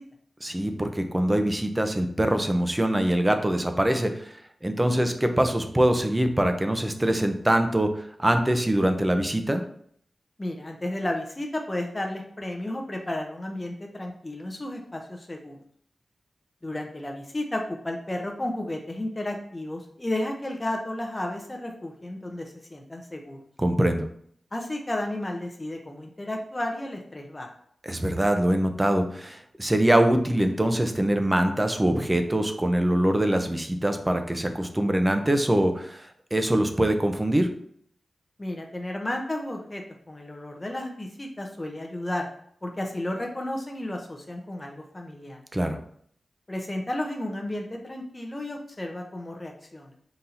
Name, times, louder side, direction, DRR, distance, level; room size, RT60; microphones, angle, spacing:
voice 1, 0.4-4.4 4.6-9.6 23.6-24.0 27.8-37.5 45.5-45.8, right 1 dB, 20° right, 6 dB, 0.6 m, -23 dB
voice 2, 10.4-15.6 16.6-23.4 24.5-27.5 38.4-42.3 42.6-45.4 46.5-49.9, left 1 dB, 25° left, 1 dB, 0.6 m, -33 dB
3.8 x 2.7 x 4.3 m, 0.64 s
cardioid pair, 65°, 0 cm